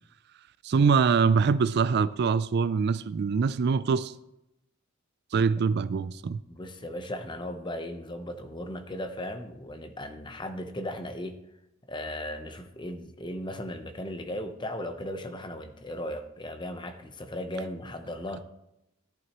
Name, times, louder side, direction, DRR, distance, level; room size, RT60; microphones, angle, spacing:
voice 1, 0.6-4.1 5.3-6.4, right 5 dB, 55° right, 0.3 m, -24 dB
voice 2, 6.5-11.4 11.9-18.4, left 1 dB, 25° left, 0.8 m, -37 dB
14.0 x 11.0 x 3.0 m
head